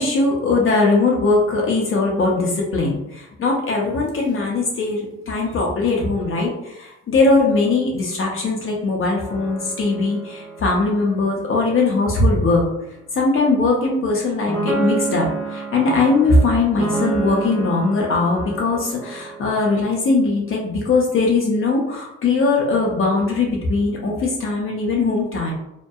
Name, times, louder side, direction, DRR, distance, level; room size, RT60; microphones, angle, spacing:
voice 1, 0.0-12.7 13.1-25.5, left 3 dB, 45° left, -2 dB, 0.5 m, -20 dB
sound 1, 9.3-12.4 13.7-13.9 14.5-19.8, right 4 dB, 40° right, 1.1 m, -29 dB
2.7 x 2.1 x 2.3 m, 0.87 s
cardioid pair, 90°, 30 cm